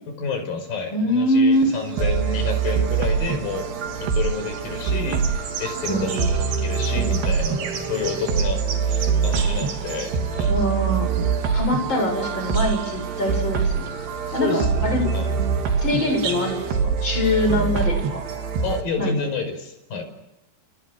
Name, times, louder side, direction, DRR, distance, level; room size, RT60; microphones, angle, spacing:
voice 1, 0.1-3.7 4.0-10.6 14.3-15.4 18.6-20.0, left 5 dB, 50° left, 7 dB, 6.9 m, -29 dB
voice 2, 0.9-1.6 5.9-6.3 10.5-11.1 11.5-13.9 14.3-15.0 15.8-18.2 19.0-19.1, left 1 dB, 25° left, 4 dB, 7.6 m, -23 dB
sound 1, 1.5-16.7, right 6 dB, 85° right, 5.4 m, -38 dB
sound 2, 2.0-18.8, right 6 dB, 65° right, 4.5 m, -24 dB
29.5 x 28.5 x 6.4 m, 0.93 s
omnidirectional pair, 5.1 m